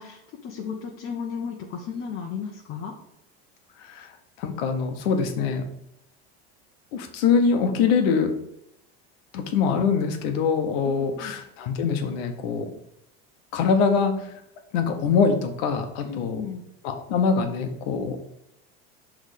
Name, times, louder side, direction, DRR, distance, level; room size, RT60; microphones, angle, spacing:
voice 1, 0.0-2.9 10.8-11.3 16.0-16.6, left 6 dB, 40° left, 0 dB, 1.0 m, -35 dB
voice 2, 4.4-5.6 6.9-8.4 9.3-12.7 13.5-14.1 14.7-16.4 16.8-18.2, left 5 dB, 75° left, 6 dB, 1.2 m, -23 dB
6.4 x 3.6 x 5.1 m, 0.79 s
supercardioid pair, 130°, 31 cm